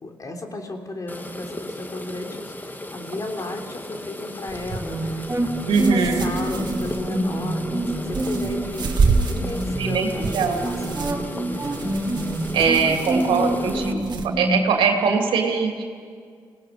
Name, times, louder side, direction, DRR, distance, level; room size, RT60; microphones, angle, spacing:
voice 1, 0.0-12.0, left 2 dB, 45° left, 3 dB, 3.6 m, -34 dB
sound 1, 1.1-13.9, left 1 dB, 20° left, 2.0 m, -37 dB
sound 2, 4.5-14.3, right 4 dB, 60° right, 2.2 m, -29 dB
sound 3, 4.8-14.5, right 1 dB, 25° right, 6.7 m, -27 dB
voice 2, 5.7-6.3 9.8-10.7 12.5-14.0 14.4-15.8, right 5 dB, 80° right, 3 dB, 2.8 m, -22 dB
26.0 x 18.5 x 6.9 m, 2.1 s
supercardioid pair, 50°, 9 cm